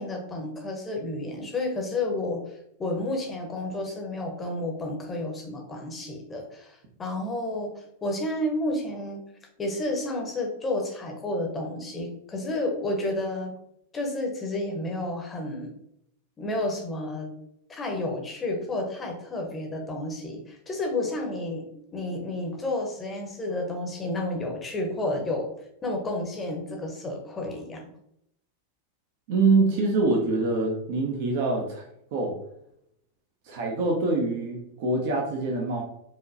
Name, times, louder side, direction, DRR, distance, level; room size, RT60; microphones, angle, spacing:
voice 1, 0.0-2.4 2.8-9.2 9.6-13.5 13.9-15.7 16.4-17.3 17.7-25.5 25.8-27.8, left 2 dB, 20° left, 1 dB, 1.0 m, -31 dB
voice 2, 29.3-31.8 32.1-32.3 33.5-35.8, right 3 dB, 50° right, 0 dB, 0.9 m, -25 dB
4.9 x 2.9 x 2.8 m, 0.74 s
figure-of-eight pair, 90°, 0 cm